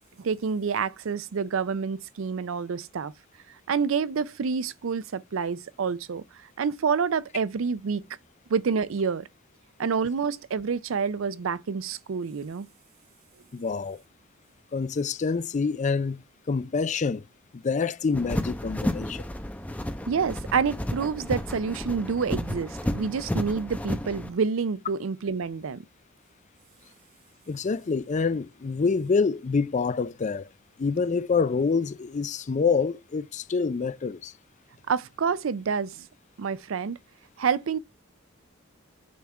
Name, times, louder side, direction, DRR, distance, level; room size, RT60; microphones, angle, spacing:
voice 1, 0.2-3.1 3.7-6.2 6.6-8.0 8.5-9.3 9.8-12.7 20.1-25.8 34.9-36.1 36.4-37.0 37.4-37.8, right 6 dB, 80° right, 0.5 m, -28 dB
voice 2, 13.5-14.0 14.7-17.2 17.5-19.2 27.5-30.5 30.8-34.3, left 5 dB, 35° left, 0.4 m, -26 dB
sound 1, 18.1-24.3, left 1 dB, 10° left, 0.7 m, -32 dB
9.3 x 3.6 x 4.2 m
head